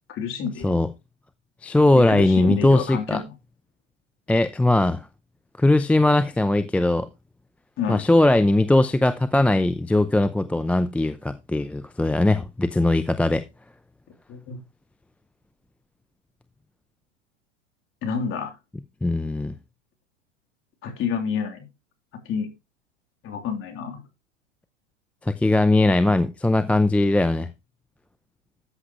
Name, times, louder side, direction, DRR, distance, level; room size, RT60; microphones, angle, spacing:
voice 1, 0.1-0.8 2.1-3.3 7.8-8.0 14.3-14.6 18.0-18.6 20.8-21.6 22.2-22.5 23.2-24.0, left 6 dB, 35° left, 3.4 m, -29 dB
voice 2, 1.6-3.2 4.3-5.1 5.6-7.1 7.9-13.4 19.0-19.5 25.2-27.5, left 2 dB, 5° left, 0.5 m, -20 dB
13.5 x 8.1 x 3.1 m
hypercardioid pair, 110°, 36 cm